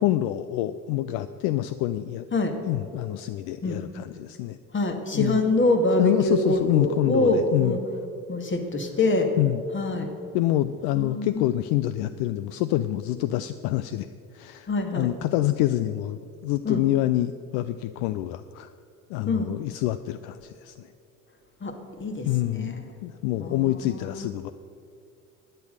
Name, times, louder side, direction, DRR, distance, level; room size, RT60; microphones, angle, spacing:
voice 1, 0.0-2.3 2.7-4.6 5.1-5.4 6.0-7.8 9.4-9.6 10.3-14.1 14.3-18.7 19.1-20.9 22.2-22.7 23.0-24.5, left 14 dB, 65° left, 13 dB, 0.5 m, -26 dB
voice 2, 4.7-7.8 8.3-9.3 9.7-10.1 11.0-11.5 14.7-15.1 16.6-16.8 19.3-19.5 21.6-22.9 23.4-24.3, left 2 dB, 30° left, 5 dB, 1.8 m, -25 dB
11.5 x 9.0 x 6.4 m, 2.5 s
hypercardioid pair, 60°, 41 cm